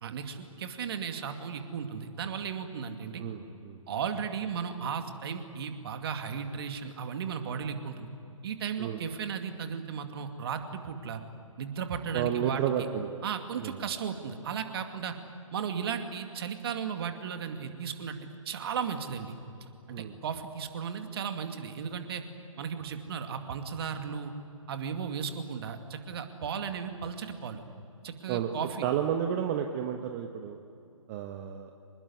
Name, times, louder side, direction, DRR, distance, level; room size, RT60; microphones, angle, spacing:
voice 1, 0.0-3.2 3.9-8.1 8.4-11.2 11.6-12.6 13.2-15.1 15.5-19.4 19.9-22.2 22.6-24.3 24.7-27.6 28.0-28.8, right 7 dB, 45° right, 6 dB, 2.4 m, -35 dB
voice 2, 3.2-3.8 8.8-9.0 12.1-13.1 13.6-13.7 19.9-20.1 28.3-28.6 28.8-30.6 31.1-31.7, right 9 dB, 30° right, 4 dB, 1.3 m, -31 dB
26.5 x 20.5 x 9.7 m, 2.7 s
figure-of-eight pair, 135°, 18 cm